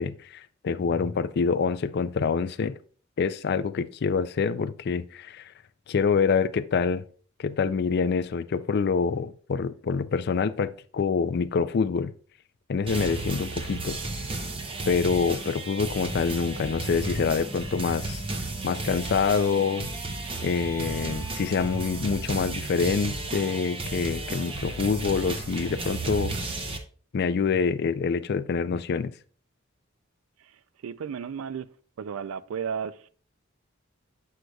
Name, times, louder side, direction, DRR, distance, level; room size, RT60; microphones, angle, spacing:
voice 1, 0.0-2.7 3.2-5.5 5.9-7.0 7.4-12.1 12.7-14.0 14.3-14.5 14.9-18.2 18.6-19.9 20.4-26.3 27.1-29.1, left 5 dB, 50° left, 0.4 m, -26 dB
sound 1, 12.9-26.8, right 2 dB, 25° right, 0.7 m, -33 dB
voice 2, 30.4-31.7 32.0-33.1, right 7 dB, 85° right, 0.4 m, -34 dB
7.6 x 6.4 x 2.3 m
head